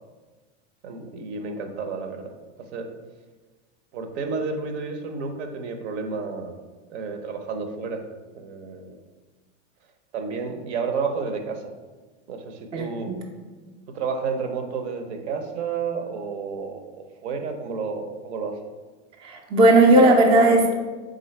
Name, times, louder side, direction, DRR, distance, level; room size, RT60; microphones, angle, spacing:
voice 1, 0.8-2.3 2.6-2.9 3.9-6.5 6.9-8.0 8.3-8.9 10.1-11.7 12.3-13.1 13.9-18.6, right 5 dB, 65° right, 6 dB, 0.7 m, -31 dB
voice 2, 12.7-13.2 19.2-20.7, right 1 dB, 15° right, 1 dB, 0.4 m, -16 dB
3.8 x 3.8 x 3.1 m, 1.3 s
hypercardioid pair, 115°, 36 cm